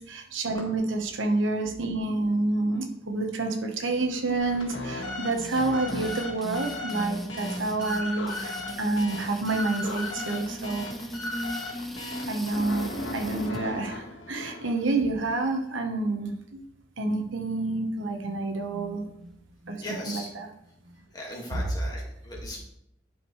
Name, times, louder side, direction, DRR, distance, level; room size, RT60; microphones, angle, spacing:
voice 1, 0.1-10.8 12.3-16.6 17.0-19.3 19.7-20.5, right 2 dB, 85° right, 4 dB, 1.1 m, -29 dB
sound 1, 4.4-14.9, left 2 dB, 80° left, 1.8 m, -37 dB
sound 2, 5.3-13.6, equal, ahead, 0.4 m, -38 dB
voice 2, 19.8-20.3 21.1-22.6, left 1 dB, 20° left, -3 dB, 1.9 m, -38 dB
11.0 x 5.0 x 3.2 m, 0.77 s
head